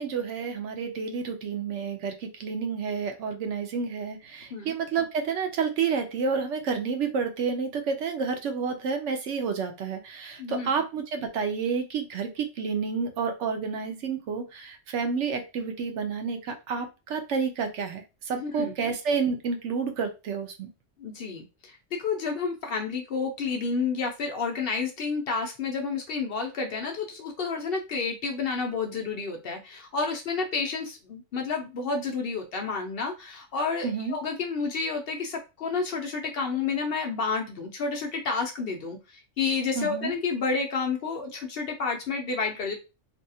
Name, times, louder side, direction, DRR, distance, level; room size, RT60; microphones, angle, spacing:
voice 1, 0.0-20.7 33.8-34.2 39.7-40.1, right 5 dB, 75° right, 6 dB, 0.9 m, -30 dB
voice 2, 10.4-10.7 18.3-18.7 21.0-42.7, left 4 dB, 60° left, 3 dB, 0.7 m, -30 dB
2.6 x 2.3 x 2.7 m, 0.28 s
omnidirectional pair, 1.3 m